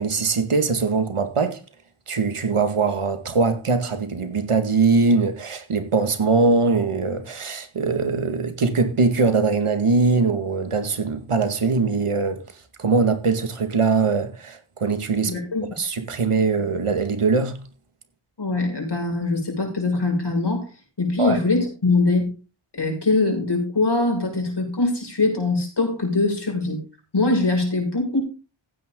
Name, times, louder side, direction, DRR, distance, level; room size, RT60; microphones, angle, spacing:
voice 1, 0.0-1.6 2.1-12.4 12.8-15.3 15.8-17.6 21.2-21.4, right 4 dB, 85° right, 2.1 m, -21 dB
voice 2, 15.3-15.7 18.4-20.7 21.0-22.3 22.8-26.8 27.1-28.2, left 3 dB, 55° left, 6.6 m, -22 dB
15.0 x 9.5 x 3.8 m
wide cardioid pair, 70°, 50 cm